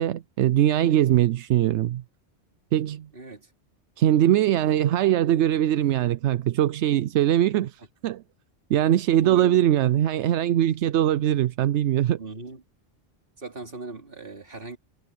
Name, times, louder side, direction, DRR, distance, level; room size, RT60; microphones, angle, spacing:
voice 1, 0.0-2.0 2.7-3.1 4.0-8.2 8.7-12.2, right 12 dB, 85° right, 0.9 m, -21 dB
voice 2, 3.1-3.5 9.2-9.6 12.2-12.6 13.4-14.8, right 3 dB, 55° right, 3.0 m, -38 dB
omnidirectional pair, 1.1 m